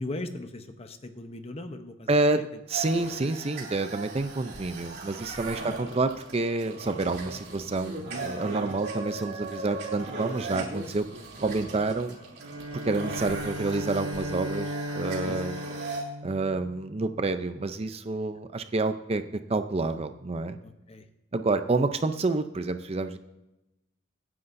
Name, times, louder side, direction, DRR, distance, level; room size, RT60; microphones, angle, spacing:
voice 1, 0.0-2.5 5.6-5.9 15.2-15.4 20.6-21.0, left 2 dB, 30° left, 8 dB, 0.8 m, -39 dB
voice 2, 2.1-2.4 2.7-11.1 11.4-12.2 12.8-15.6 16.2-19.2 19.5-20.6 21.3-23.2, right 3 dB, 30° right, 9 dB, 0.5 m, -28 dB
sound 1, 2.7-16.0, right 2 dB, 55° right, 2.8 m, -38 dB
Bowed string instrument, 12.4-17.2, equal, 85° right, 2.9 m, -36 dB
24.0 x 9.7 x 2.6 m, 0.97 s
head